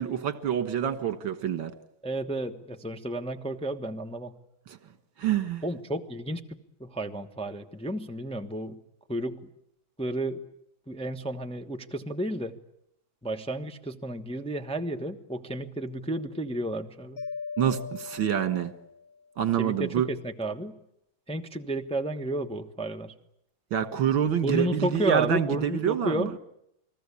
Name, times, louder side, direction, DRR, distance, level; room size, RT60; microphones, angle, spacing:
voice 1, 0.0-1.7 5.2-5.6 17.6-18.7 19.4-20.1 23.7-26.3, right 9 dB, 70° right, 11 dB, 2.3 m, -26 dB
voice 2, 2.0-4.3 5.6-6.4 6.8-8.8 9.1-9.4 10.0-10.4 10.9-12.5 13.2-17.2 19.6-20.7 21.3-23.1 24.4-26.3, right 1 dB, 5° left, 4 dB, 0.9 m, -32 dB
Mallet percussion, 17.2-19.2, left 5 dB, 50° left, 1.8 m, -39 dB
29.5 x 20.0 x 8.4 m, 0.77 s
omnidirectional pair, 2.2 m